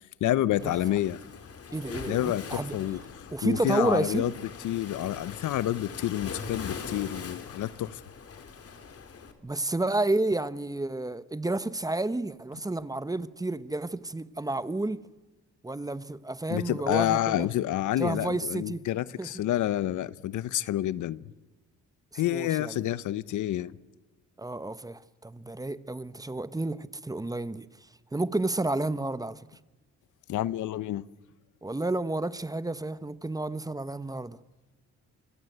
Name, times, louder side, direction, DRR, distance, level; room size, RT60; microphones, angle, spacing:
voice 1, 0.2-1.2 2.1-4.3 4.6-8.0 16.5-21.2 22.1-23.7 30.3-31.0, left 13 dB, 75° left, 1.0 m, -29 dB
Waves surf, 0.6-9.3, left 5 dB, 50° left, 3.8 m, -42 dB
voice 2, 1.7-2.7 3.3-4.3 9.4-15.0 15.6-17.5 18.0-18.8 19.2-19.3 22.3-22.7 24.4-27.7 28.1-29.4 31.6-34.4, right 2 dB, 10° right, 1.1 m, -30 dB
27.5 x 24.5 x 8.0 m
cardioid pair, 90°, 30 cm